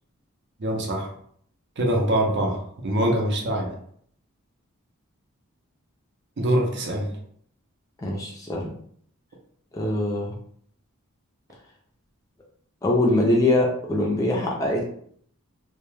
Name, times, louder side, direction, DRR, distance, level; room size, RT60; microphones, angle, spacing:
voice 1, 0.6-1.1 1.8-3.7 6.4-7.1, right 1 dB, 50° right, 1 dB, 0.6 m, -24 dB
voice 2, 8.0-8.7 9.7-10.3 12.8-14.8, left 1 dB, 15° left, -2 dB, 0.4 m, -23 dB
2.2 x 2.2 x 3.1 m, 0.62 s
head